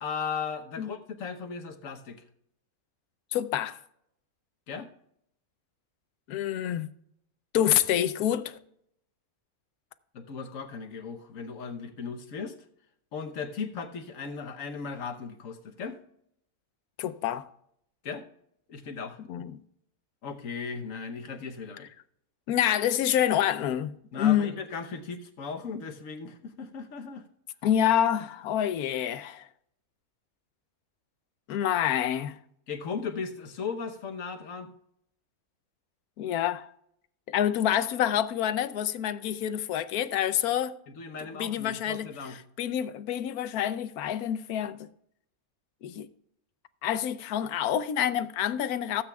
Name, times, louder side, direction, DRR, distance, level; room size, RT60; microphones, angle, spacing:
voice 1, 0.0-2.2 4.7-4.9 8.0-8.1 10.1-12.5 13.1-16.0 18.0-18.3 18.7-19.2 20.2-21.9 24.1-27.2 32.7-34.7 40.9-42.4, left 5 dB, 65° left, 1.4 m, -37 dB
voice 2, 3.3-3.8 6.3-6.9 7.5-8.4 17.0-17.4 19.3-19.6 22.5-24.5 27.6-29.4 31.5-32.4 36.2-36.7 37.3-40.7 41.4-42.1 42.6-44.9 45.8-46.1 46.8-49.0, left 10 dB, 90° left, 1.1 m, -27 dB
16.0 x 8.4 x 2.3 m
omnidirectional pair, 1.5 m